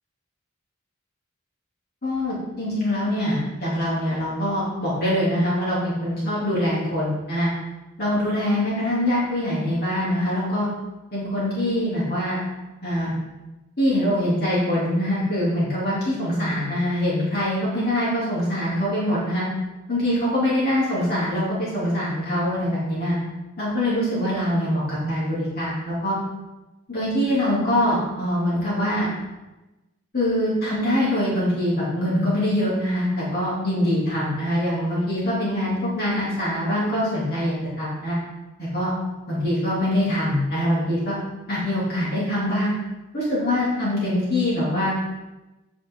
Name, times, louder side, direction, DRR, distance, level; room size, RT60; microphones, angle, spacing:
voice 1, 2.0-7.5 8.0-10.7 11.1-12.4 12.8-13.1 13.8-19.4 19.9-23.2 23.6-26.2 26.9-29.1 30.1-38.2 38.6-38.9 39.3-41.2 41.5-42.7 43.1-44.9, left 1 dB, 50° left, -8 dB, 3.2 m, -23 dB
9.1 x 6.3 x 3.9 m, 1.1 s
head